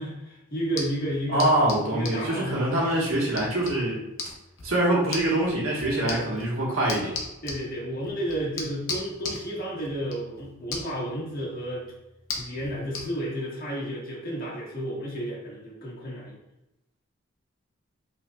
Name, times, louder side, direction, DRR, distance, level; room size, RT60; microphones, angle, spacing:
voice 1, 0.0-1.5 1.9-2.6 6.0-6.2 7.4-11.8 12.4-16.4, equal, 45° left, -5 dB, 1.5 m, -32 dB
sound 1, 0.6-13.1, left 3 dB, 65° left, 0.9 m, -39 dB
voice 2, 1.3-4.0 4.6-7.1, right 1 dB, 85° right, -4 dB, 1.3 m, -24 dB
5.4 x 3.5 x 2.3 m, 0.91 s
head